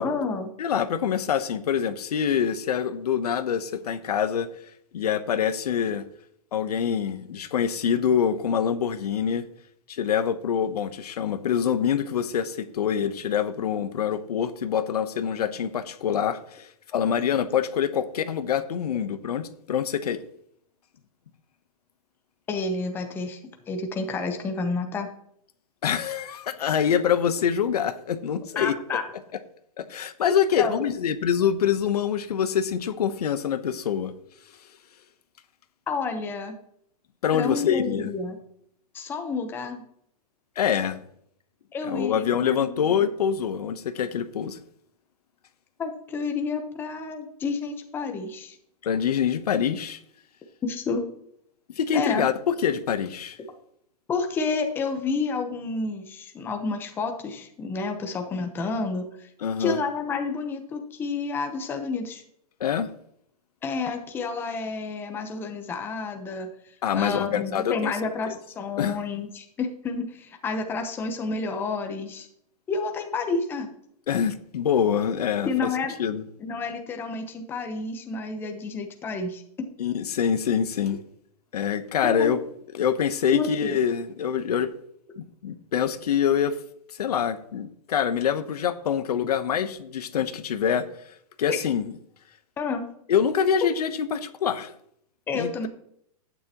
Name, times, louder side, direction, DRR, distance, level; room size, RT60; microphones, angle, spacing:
voice 1, 0.0-0.5 22.5-23.4 23.7-25.1 28.5-29.0 30.6-30.9 35.9-36.6 37.3-38.4 38.9-39.8 41.7-43.0 45.8-48.6 50.6-51.0 51.9-52.2 54.1-59.3 59.6-62.2 63.6-66.5 66.9-72.3 72.7-73.7 75.4-75.9 76.4-79.4 82.0-82.3 83.3-83.8 91.5-91.6 92.6-92.8 95.3-95.7, left 4 dB, 10° left, 5 dB, 0.9 m, -30 dB
voice 2, 0.6-4.5 4.9-6.0 6.5-9.4 9.9-20.2 25.8-28.7 29.8-34.1 37.2-38.1 40.6-41.0 41.8-44.6 48.8-50.0 51.8-53.4 59.4-59.8 62.6-62.9 66.8-67.9 68.3-68.4 68.8-69.0 74.1-75.7 76.0-76.2 79.8-81.0 81.5-82.4 82.7-84.7 85.2-86.6 87.0-90.9 91.4-91.9 93.1-94.7 95.3-95.7, left 8 dB, 85° left, 11 dB, 1.0 m, -25 dB
11.0 x 9.4 x 3.0 m, 0.70 s
hypercardioid pair, 165°, 20 cm